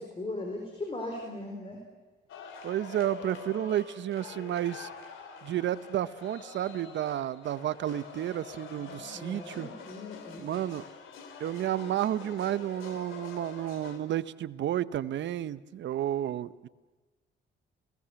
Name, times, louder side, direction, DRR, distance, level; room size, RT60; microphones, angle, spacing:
voice 1, 0.0-1.8 8.8-10.6, left 2 dB, 30° left, 2 dB, 4.1 m, -39 dB
sound 1, 2.3-14.0, left 6 dB, 80° left, 3.0 m, -46 dB
voice 2, 2.6-4.9 5.4-9.7 10.4-10.8 11.4-16.7, right 12 dB, 65° right, 16 dB, 0.8 m, -31 dB
29.5 x 18.0 x 7.0 m, 1.2 s
cardioid pair, 90°, 20 cm